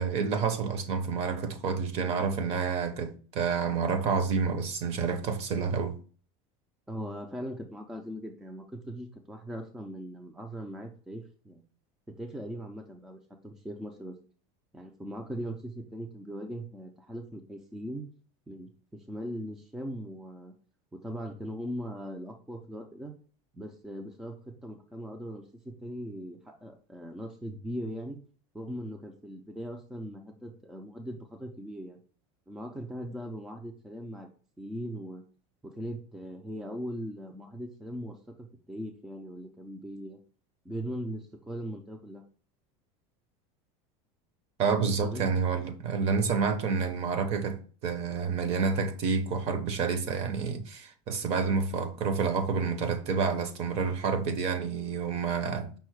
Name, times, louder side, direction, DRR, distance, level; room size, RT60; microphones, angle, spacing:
voice 1, 0.0-6.0 44.6-55.7, right 5 dB, 40° right, 0.7 m, -29 dB
voice 2, 6.9-11.6 12.1-13.2 13.4-14.1 14.7-18.0 18.5-20.5 20.9-23.1 23.5-28.2 28.5-32.0 32.5-34.3 34.6-35.2 35.6-40.2 40.7-42.2 45.0-45.3, equal, 5° right, 0.3 m, -40 dB
5.5 x 2.1 x 4.5 m
cardioid pair, 165°, 16 cm